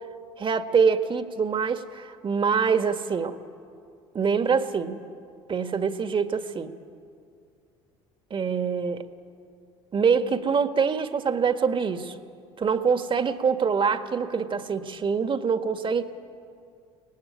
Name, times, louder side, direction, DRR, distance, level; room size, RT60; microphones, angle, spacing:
voice 1, 0.4-3.4 4.1-5.0 5.5-6.7 8.3-9.0 9.9-12.1 12.6-16.0, right 6 dB, 35° right, 9 dB, 1.7 m, -25 dB
24.5 x 18.5 x 10.0 m, 2.4 s
hypercardioid pair, 70°, 14 cm